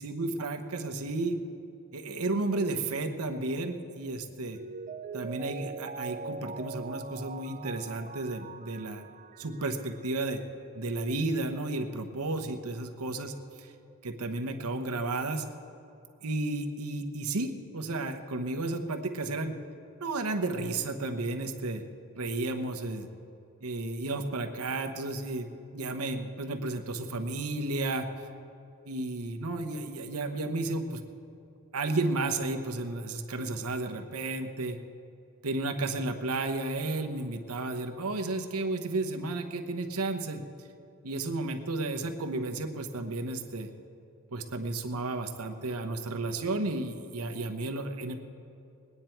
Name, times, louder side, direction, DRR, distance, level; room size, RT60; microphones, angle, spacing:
voice 1, 0.0-1.4 1.9-4.6 5.1-9.0 9.4-10.4 10.7-13.7 14.0-15.5 16.2-19.5 20.0-21.8 22.2-23.1 23.6-25.5 25.7-28.1 28.8-31.0 31.7-34.8 35.4-40.4 41.0-43.7 44.3-48.1, right 2 dB, 80° right, 6 dB, 1.0 m, -32 dB
Mallet percussion, 4.5-10.1 10.4-10.5, right 4 dB, 35° right, 0.3 m, -42 dB
21.0 x 9.9 x 4.5 m, 2.7 s
head